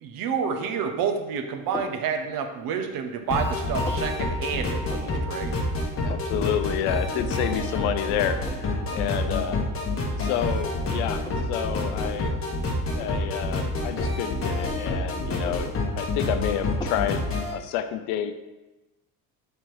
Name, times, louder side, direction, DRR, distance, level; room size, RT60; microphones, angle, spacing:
voice 1, 0.0-5.6 8.9-9.0, right 6 dB, 55° right, 6 dB, 0.7 m, -29 dB
sound 1, 1.7-2.0 2.6-3.2 3.5-4.1 4.9-5.3 5.6-5.7 5.9-6.5 6.8-6.9 7.5-7.9 8.5-8.7 9.6-9.7 10.2-11.5 11.9-12.1 12.9-13.3 14.3-14.9 15.3-16.3 16.8-17.1, left 2 dB, 10° left, 0.3 m, -40 dB
sound 2, 3.3-17.5, left 2 dB, 30° left, 1.0 m, -28 dB
voice 2, 6.0-9.6 10.2-12.4 12.9-18.3, left 10 dB, 70° left, 9 dB, 0.5 m, -29 dB
3.4 x 2.9 x 4.5 m, 1.1 s
hypercardioid pair, 75°, 42 cm